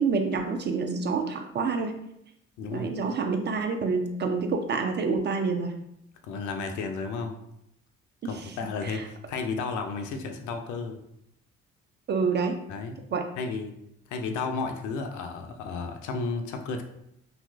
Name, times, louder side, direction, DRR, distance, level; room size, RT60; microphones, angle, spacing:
voice 1, 0.0-2.0 2.7-5.7 8.2-8.6 8.8-9.1 12.1-12.6 13.1-13.2, right 4 dB, 30° right, 4 dB, 0.4 m, -27 dB
voice 2, 2.6-2.9 6.2-7.3 8.2-11.0 12.7-13.0 13.4-13.7 14.1-16.8, left 4 dB, 55° left, 5 dB, 0.5 m, -33 dB
2.9 x 2.4 x 2.3 m, 0.79 s
figure-of-eight pair, 45°, 35 cm